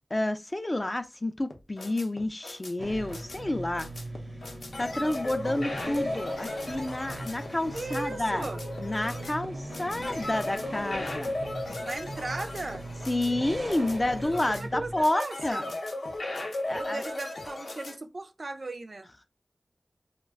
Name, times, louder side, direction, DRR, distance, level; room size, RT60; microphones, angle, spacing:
voice 1, 0.1-3.9 4.8-8.5 8.8-11.3 11.7-11.8 13.1-15.7 16.6-17.0, left 1 dB, 30° left, 0.3 m, -30 dB
sound 1, 1.5-17.9, left 2 dB, 75° left, 0.5 m, -37 dB
sound 2, 2.8-15.0, right 2 dB, 90° right, 0.7 m, -40 dB
voice 2, 7.7-8.6 11.8-12.8 14.5-15.6 16.7-19.1, right 2 dB, 60° right, 0.3 m, -37 dB
2.3 x 2.2 x 3.3 m
wide cardioid pair, 60°, 0 cm